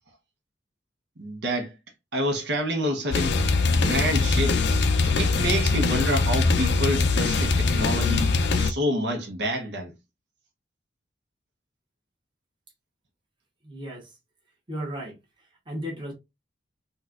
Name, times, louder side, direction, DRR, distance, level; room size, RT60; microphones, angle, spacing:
voice 1, 1.2-1.7 2.1-3.4 3.8-4.6 5.0-9.9, equal, 70° right, 0.8 m, -28 dB
sound 1, 3.1-8.7, left 3 dB, 70° left, 0.4 m, -22 dB
voice 2, 13.6-14.1 14.7-15.2 15.7-16.1, equal, 25° right, 1.0 m, -34 dB
4.1 x 2.3 x 2.4 m
head